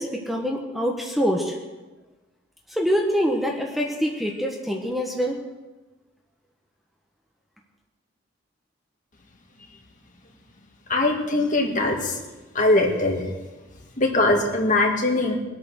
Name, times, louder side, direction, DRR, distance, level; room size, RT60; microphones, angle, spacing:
voice 1, 0.0-1.6 2.7-5.4, equal, ahead, -1 dB, 1.4 m, -25 dB
voice 2, 10.9-12.1 12.6-13.2 14.0-15.4, left 2 dB, 40° left, 1 dB, 2.2 m, -21 dB
21.5 x 8.7 x 6.5 m, 1.2 s
head